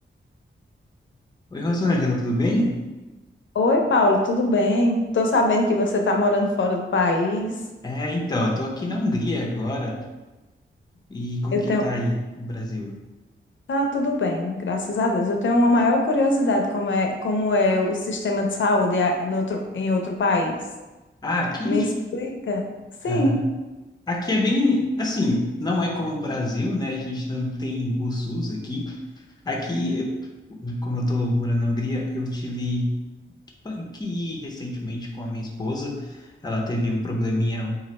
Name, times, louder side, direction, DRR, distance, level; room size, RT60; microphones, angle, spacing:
voice 1, 1.5-2.8 7.8-10.0 11.1-13.0 21.2-21.9 23.1-23.5 24.1-29.0 29.5-30.1 30.5-32.9 33.6-37.8, left 1 dB, 20° left, -1 dB, 0.5 m, -26 dB
voice 2, 3.5-7.6 11.5-11.8 13.7-20.6 21.6-21.9 22.1-22.6 23.0-23.4, left 2 dB, 65° left, 2 dB, 0.5 m, -22 dB
3.1 x 2.4 x 4.1 m, 1.1 s
wide cardioid pair, 160°, 21 cm